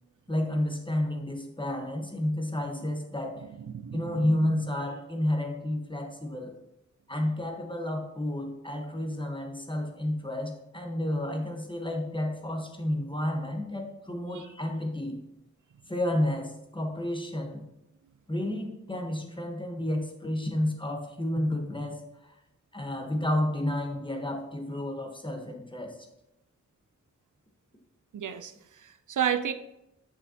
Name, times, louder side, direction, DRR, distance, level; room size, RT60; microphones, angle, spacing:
voice 1, 0.3-3.5 3.9-6.5 7.1-15.2 15.9-17.6 18.3-22.4 22.7-26.1, left 1 dB, 15° left, 3 dB, 1.1 m, -31 dB
voice 2, 3.7-4.2 14.3-14.5 28.1-29.5, right 9 dB, 80° right, 10 dB, 0.5 m, -31 dB
7.6 x 6.4 x 2.8 m, 0.88 s
wide cardioid pair, 70°, 30 cm